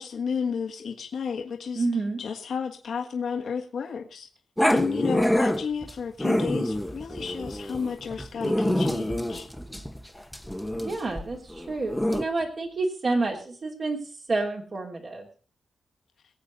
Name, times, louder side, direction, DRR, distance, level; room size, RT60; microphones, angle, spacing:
voice 1, 0.0-1.8 2.2-4.3 4.7-9.5, left 6 dB, 70° left, 2 dB, 1.5 m, -32 dB
voice 2, 1.7-2.2 10.8-14.0 14.3-15.3, right 3 dB, 45° right, 0 dB, 3.1 m, -29 dB
Growling, 4.6-12.2, left 1 dB, 5° left, 1.0 m, -27 dB
23.0 x 8.2 x 4.0 m, 0.39 s
wide cardioid pair, 120°, 0 cm